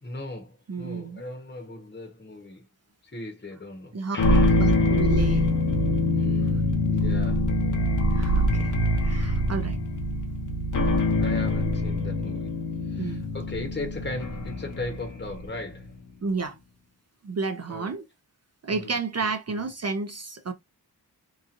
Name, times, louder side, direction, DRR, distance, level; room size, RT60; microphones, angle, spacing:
voice 1, 0.0-2.7 3.0-4.6 6.1-7.5 11.2-12.5 12.8-15.9 17.7-17.9 18.7-19.6, left 2 dB, 25° left, 1.0 m, -38 dB
voice 2, 0.7-1.2 3.9-4.2 4.5-5.5 8.1-8.7 9.0-9.8 13.0-13.3 16.2-16.6 17.2-18.0 18.6-20.5, right 4 dB, 40° right, 0.5 m, -31 dB
sound 1, 4.2-15.6, left 1 dB, 50° left, 0.8 m, -24 dB
2.9 x 2.4 x 2.5 m
wide cardioid pair, 60°, 39 cm